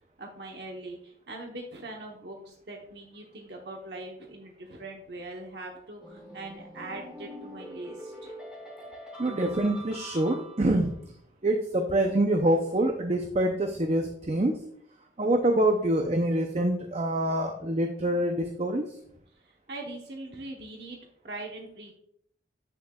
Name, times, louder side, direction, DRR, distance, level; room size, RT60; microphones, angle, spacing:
voice 1, 0.2-8.4 19.3-21.0 21.2-21.9, right 2 dB, 65° right, 0 dB, 1.0 m, -42 dB
sound 1, 6.0-10.9, right 1 dB, 5° right, 2.2 m, -44 dB
voice 2, 9.2-11.0 11.4-14.5 15.2-18.8, right 1 dB, 35° right, 4 dB, 0.6 m, -25 dB
8.9 x 6.5 x 2.3 m, 0.68 s
head